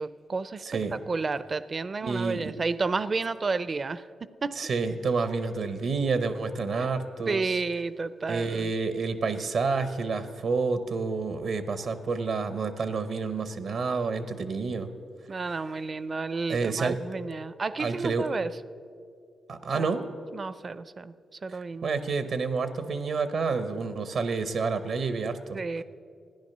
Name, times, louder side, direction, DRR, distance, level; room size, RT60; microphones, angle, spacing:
voice 1, 0.0-4.6 7.3-8.7 15.3-18.5 19.7-19.9 20.3-21.1 21.4-21.9 25.5-25.8, right 4 dB, 40° right, 16 dB, 0.5 m, -31 dB
voice 2, 0.6-0.9 2.0-2.5 4.6-7.5 8.3-14.9 16.5-17.0 17.8-18.3 19.5-20.1 21.5-25.6, right 4 dB, 70° right, 11 dB, 0.9 m, -29 dB
14.0 x 10.0 x 6.7 m, 2.3 s
cardioid pair, 70°, 0 cm